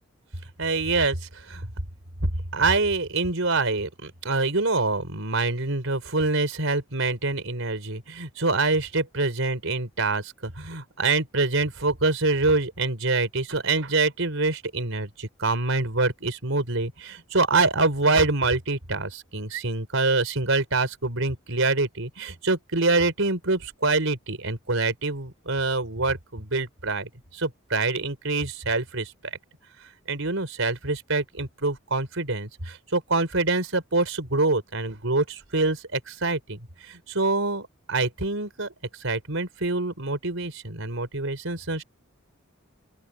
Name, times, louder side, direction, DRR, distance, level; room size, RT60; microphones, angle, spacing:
voice 1, 0.6-1.7 2.5-29.3 30.1-41.8, right 3 dB, 70° right, 4.7 m, -25 dB
open air
head